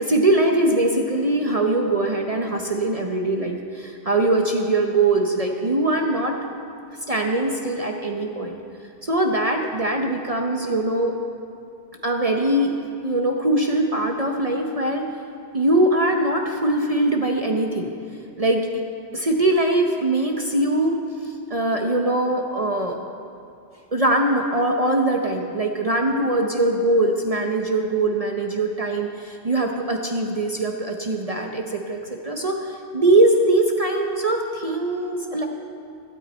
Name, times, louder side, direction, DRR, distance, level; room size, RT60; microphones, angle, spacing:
voice 1, 0.0-6.4 7.1-8.6 9.0-11.1 12.0-12.7 13.0-15.1 15.5-17.9 18.4-18.7 19.1-23.0 23.9-35.4, right 2 dB, 35° right, 2 dB, 0.9 m, -22 dB
17.0 x 13.0 x 4.3 m, 2.6 s
omnidirectional pair, 1.1 m